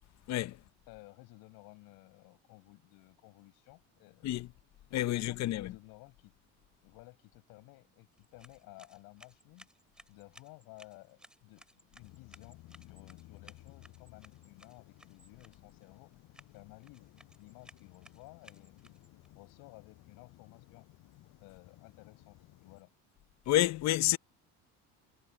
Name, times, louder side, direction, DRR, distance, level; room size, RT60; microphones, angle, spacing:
voice 1, 0.9-4.3 4.9-6.3 6.8-9.7 10.1-16.1 16.5-17.1 17.4-19.0 19.3-20.9 21.4-22.9, left 24 dB, 90° left, 6.5 m, -56 dB
voice 2, 4.9-5.7 23.5-24.2, left 14 dB, 55° left, 0.7 m, -29 dB
sound 1, 8.1-19.3, equal, ahead, 5.3 m, -61 dB
sound 2, 12.0-22.8, left 17 dB, 70° left, 7.8 m, -58 dB
cardioid pair, 125°, 34 cm